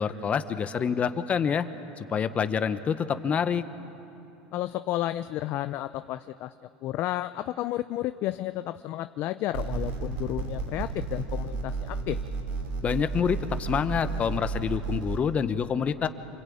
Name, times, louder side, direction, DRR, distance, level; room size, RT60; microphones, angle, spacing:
voice 1, 0.0-1.7 2.0-3.6 12.8-16.1, left 7 dB, 30° left, 11 dB, 1.1 m, -27 dB
voice 2, 4.5-6.5 6.8-12.2, left 14 dB, 55° left, 11 dB, 0.6 m, -32 dB
sound 1, 9.5-15.2, right 4 dB, 65° right, 6.2 m, -32 dB
28.0 x 20.5 x 8.8 m, 2.8 s
supercardioid pair, 110°, 4 cm